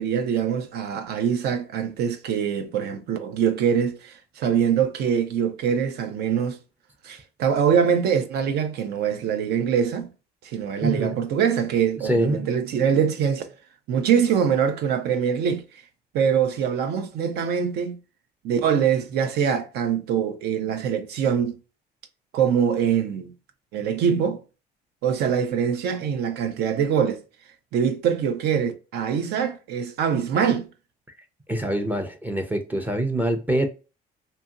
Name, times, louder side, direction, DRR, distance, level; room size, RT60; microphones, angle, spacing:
voice 1, 0.0-6.6 7.0-10.1 10.4-13.5 13.9-15.6 16.1-18.0 18.4-21.5 22.3-23.3 23.7-24.4 25.0-27.2 27.7-30.7, right 7 dB, 75° right, 0.5 m, -23 dB
voice 2, 10.8-11.2 12.0-12.5 31.5-33.7, right 1 dB, 10° right, 0.4 m, -25 dB
2.8 x 2.7 x 2.3 m
cardioid pair, 110°, 17 cm